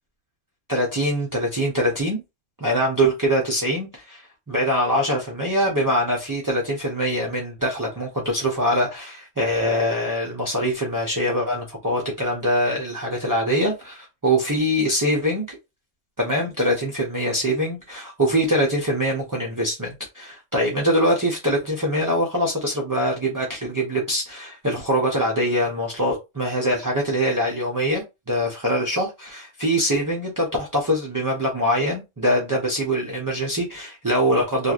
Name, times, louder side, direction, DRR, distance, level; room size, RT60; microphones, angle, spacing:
voice 1, 0.7-2.2 2.6-4.2 4.5-15.6 16.2-34.7, equal, 25° right, 0.4 m, -23 dB
3.0 x 2.4 x 2.4 m
omnidirectional pair, 1.4 m